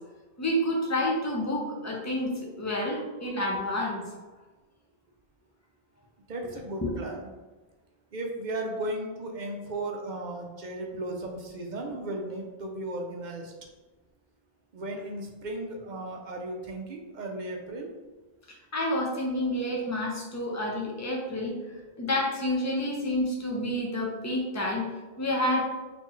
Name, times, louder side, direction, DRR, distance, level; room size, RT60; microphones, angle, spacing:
voice 1, 0.4-2.3 2.6-4.0 6.8-6.9 18.7-21.5 22.0-24.8 25.2-25.7, left 1 dB, 20° left, -2 dB, 0.6 m, -29 dB
voice 2, 6.3-7.3 8.1-13.5 14.7-17.9, right 1 dB, 55° right, 1 dB, 0.7 m, -35 dB
4.1 x 3.0 x 3.1 m, 1.2 s
omnidirectional pair, 1.0 m